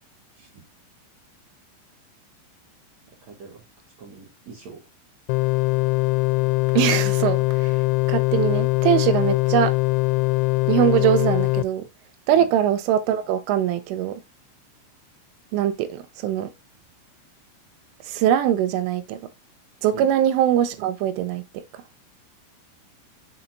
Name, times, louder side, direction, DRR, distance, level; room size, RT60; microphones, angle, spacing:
voice 1, 3.3-3.6 4.0-4.8 12.4-12.5 19.9-20.1, right 5 dB, 45° right, 2.5 m, -42 dB
sound 1, 5.3-11.6, left 21 dB, 85° left, 2.7 m, -22 dB
voice 2, 6.8-7.7 8.1-9.8 10.7-11.9 12.3-14.1 15.5-16.5 18.1-19.2 19.8-21.4, right 10 dB, 80° right, 3.2 m, -22 dB
7.8 x 4.2 x 4.0 m
omnidirectional pair, 6.0 m